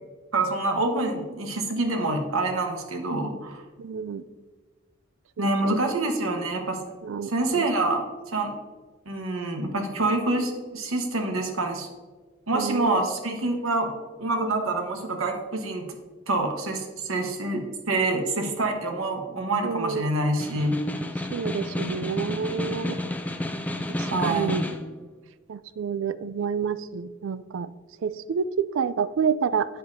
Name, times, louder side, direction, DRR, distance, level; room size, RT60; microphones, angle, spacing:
voice 1, 0.3-3.6 5.4-6.8 7.2-8.5 9.1-11.9 12.5-13.9 14.2-15.9 16.3-20.8 24.0-24.6, right 2 dB, 85° right, 3 dB, 1.2 m, -26 dB
voice 2, 3.8-4.2 5.4-5.8 7.0-7.7 12.5-13.0 19.6-20.1 21.2-23.0 24.0-24.6 25.5-27.7 28.0-29.7, right 6 dB, 70° right, 15 dB, 0.3 m, -29 dB
Snare drum, 20.3-24.9, left 1 dB, 5° left, 0.3 m, -31 dB
8.7 x 7.9 x 2.7 m, 1.4 s
head